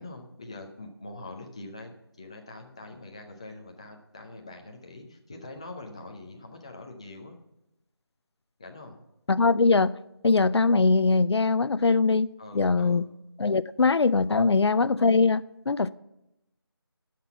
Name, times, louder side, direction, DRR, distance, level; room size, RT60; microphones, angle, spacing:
voice 1, 0.0-7.4 8.6-9.0 12.4-13.0 14.3-14.5, left 2 dB, 15° left, 0.5 m, -44 dB
voice 2, 9.3-10.0 10.2-12.3 12.5-13.0 13.4-15.9, left 4 dB, 85° left, 0.4 m, -22 dB
10.5 x 5.9 x 6.9 m
figure-of-eight pair, 165°, 13 cm